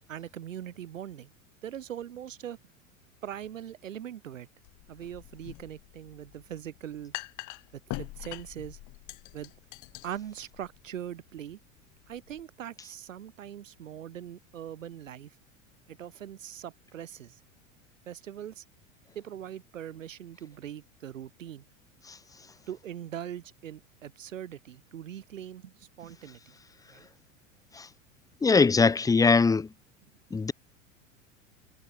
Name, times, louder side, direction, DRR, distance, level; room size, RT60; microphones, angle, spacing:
voice 1, 0.1-1.3 1.6-2.6 3.2-4.5 4.9-7.1 7.7-8.8 9.3-9.5 10.0-11.6 12.1-15.3 15.9-17.4 18.1-18.6 19.1-21.6 22.7-26.4 26.9-27.1, right 10 dB, 70° right, 5.8 m, -41 dB
sound 1, 4.6-12.4, left 22 dB, 45° left, 6.4 m, -44 dB
voice 2, 28.4-29.7 30.3-30.5, left 4 dB, 10° left, 0.7 m, -21 dB
figure-of-eight pair, 85°, 40 cm